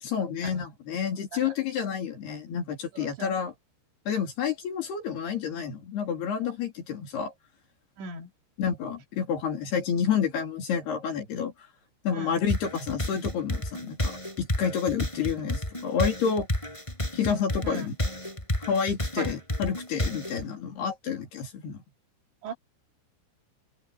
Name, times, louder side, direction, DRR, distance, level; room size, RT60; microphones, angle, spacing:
voice 1, 0.0-3.5 4.1-7.3 8.6-11.5 12.0-16.5 17.1-17.9 18.7-21.8, left 7 dB, 55° left, 4.9 m, -29 dB
voice 2, 2.9-3.3 8.0-8.3 12.1-12.4 17.6-17.9 19.2-19.4 21.6-21.7 22.4-22.5, right 4 dB, 65° right, 4.4 m, -38 dB
sound 1, 12.5-20.4, left 1 dB, 5° left, 5.5 m, -31 dB
omnidirectional pair, 5.9 m